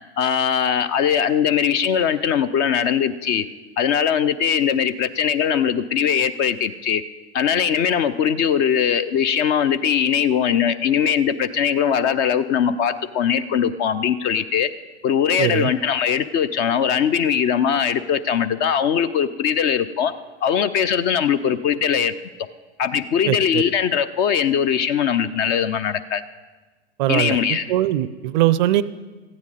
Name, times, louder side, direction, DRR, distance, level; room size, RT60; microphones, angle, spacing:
voice 1, 0.2-3.4 3.8-7.0 7.3-14.7 15.0-20.1 20.4-22.1 22.8-26.2 27.1-27.7, left 8 dB, 30° left, 13 dB, 0.4 m, -20 dB
voice 2, 15.4-15.7 23.3-23.6 27.0-28.8, right 14 dB, 45° right, 18 dB, 0.4 m, -21 dB
15.0 x 9.5 x 4.0 m, 1.3 s
figure-of-eight pair, 90°, 34 cm